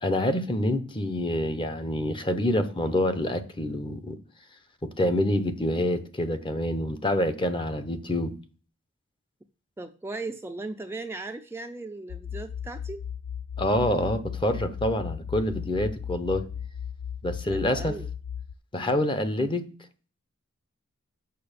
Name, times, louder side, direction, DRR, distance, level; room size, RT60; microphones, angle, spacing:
voice 1, 0.0-4.2 4.8-8.3 13.6-16.5 17.2-17.9 18.7-19.6, left 1 dB, 25° left, 0.8 m, -27 dB
voice 2, 9.8-13.0 17.5-18.1 18.8-19.0, right 3 dB, 10° right, 0.4 m, -37 dB
sound 1, 12.1-18.5, left 8 dB, 85° left, 0.4 m, -36 dB
6.9 x 6.0 x 6.7 m
head